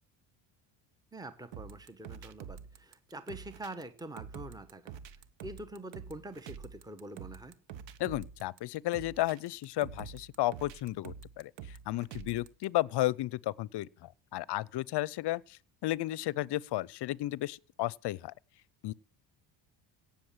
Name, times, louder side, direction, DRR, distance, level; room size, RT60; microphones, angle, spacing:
voice 1, 1.1-4.9 5.4-7.5, right 1 dB, 10° right, 1.2 m, -45 dB
sound 1, 1.5-12.6, right 8 dB, 60° right, 1.2 m, -47 dB
voice 2, 8.0-11.5 11.9-18.3 18.8-18.9, left 16 dB, 55° left, 0.7 m, -33 dB
17.0 x 7.1 x 7.4 m
supercardioid pair, 75°, 50 cm